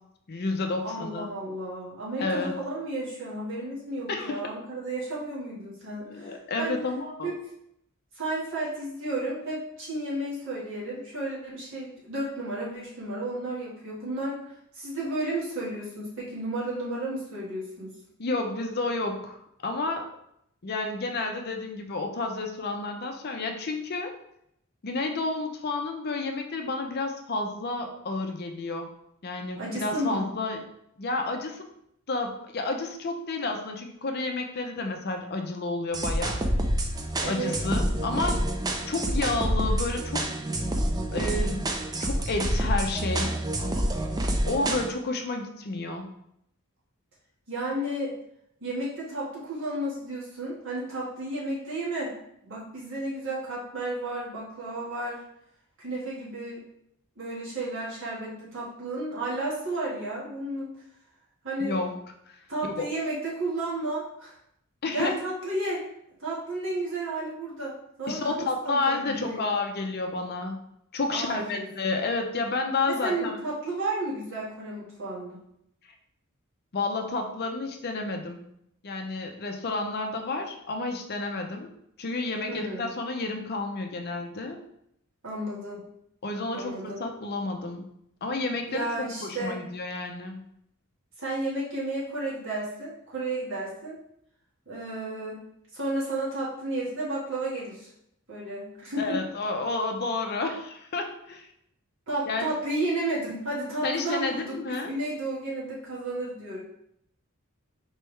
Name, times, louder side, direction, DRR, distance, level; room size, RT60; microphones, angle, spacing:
voice 1, 0.3-1.3 2.2-2.5 4.1-4.4 6.1-7.3 18.2-20.1 20.6-24.1 24.8-28.9 29.2-30.6 31.0-31.7 32.1-36.4 37.3-38.5 38.9-40.3 41.1-41.7 42.0-43.4 44.4-46.1 61.6-61.9 62.3-62.4 62.6-62.9 64.8-65.2 68.1-70.7 70.9-73.4 76.7-78.4 78.8-81.7 82.0-84.6 86.2-87.9 88.2-90.5 99.0-101.5 102.3-102.6 103.8-104.9, left 3 dB, 50° left, 4 dB, 0.6 m, -30 dB
voice 2, 0.8-6.8 7.2-7.3 8.1-17.9 29.6-30.3 37.2-37.5 47.5-48.1 48.6-52.1 52.4-55.2 55.8-56.6 57.2-60.7 61.4-61.8 62.5-64.3 64.9-65.8 66.2-67.7 68.0-69.5 71.1-71.7 72.9-75.4 82.5-82.9 85.2-85.8 86.5-87.0 88.7-89.6 91.2-94.0 94.7-95.4 95.7-97.9 98.3-99.2 102.1-106.6, right 2 dB, 60° right, -6 dB, 1.5 m, -32 dB
sound 1, 35.9-44.9, right 1 dB, 20° right, 0.4 m, -27 dB
4.5 x 3.3 x 3.2 m, 0.75 s
head